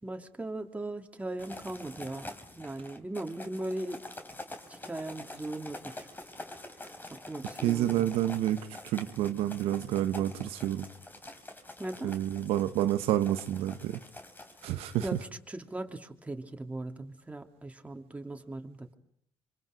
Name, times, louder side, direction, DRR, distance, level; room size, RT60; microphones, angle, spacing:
voice 1, 0.0-4.0 4.9-6.1 7.1-8.1 11.8-12.1 15.0-18.9, right 2 dB, 15° right, 4 dB, 2.8 m, -39 dB
sound 1, 1.4-15.2, left 2 dB, 20° left, 3.4 m, -46 dB
voice 2, 7.6-8.6 8.9-10.9 12.0-14.0 14.6-15.2, right 12 dB, 80° right, 9 dB, 1.1 m, -29 dB
27.0 x 25.0 x 5.1 m, 0.70 s
supercardioid pair, 65°, 10 cm